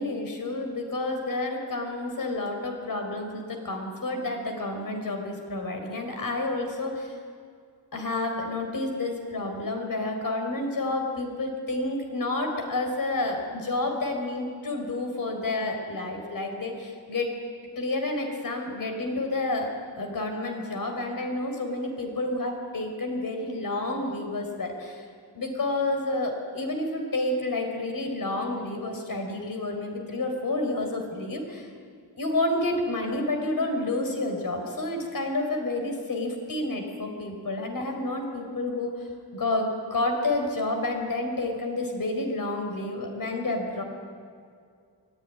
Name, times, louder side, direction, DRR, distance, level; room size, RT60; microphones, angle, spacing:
voice 1, 0.0-7.1 7.9-17.3 17.8-19.7 20.0-25.0 25.3-31.7 32.2-38.9 39.3-43.8, left 2 dB, 45° left, 3 dB, 4.7 m, -29 dB
23.5 x 16.5 x 9.6 m, 2.2 s
wide cardioid pair, 125°, 45 cm